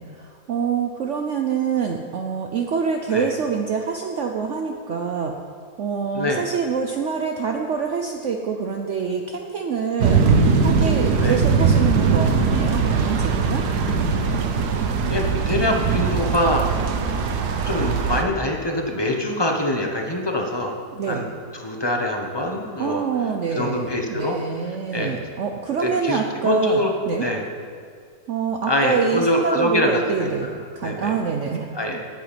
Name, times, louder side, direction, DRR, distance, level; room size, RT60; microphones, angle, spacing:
voice 1, 0.0-5.3 5.8-10.2 10.6-13.6 20.9-21.3 22.8-27.3 28.3-32.0, right 6 dB, 55° right, 3 dB, 0.9 m, -25 dB
sound 1, 10.0-18.2, right 5 dB, 90° right, 1.5 m, -20 dB
voice 2, 15.1-16.7 17.6-20.7 21.1-21.3 21.5-23.0 23.5-24.4 24.9-25.2 25.8-26.9 27.2-27.4 28.7-30.5 30.8-31.1 31.7-32.1, left 1 dB, 20° left, 2 dB, 1.0 m, -24 dB
9.0 x 7.9 x 8.9 m, 2.2 s
omnidirectional pair, 1.7 m